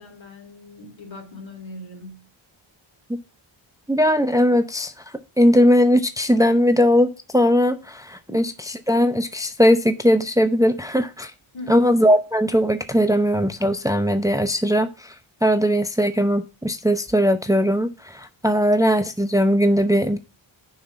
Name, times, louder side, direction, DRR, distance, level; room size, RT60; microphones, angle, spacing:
voice 1, 0.0-2.3 8.3-8.6 11.5-11.8, left 1 dB, 65° left, 3.5 m, -40 dB
voice 2, 3.9-4.9 5.4-11.3 11.7-15.2 15.4-20.2, equal, 5° right, 0.7 m, -19 dB
7.2 x 5.8 x 7.0 m
cardioid pair, 80°, 49 cm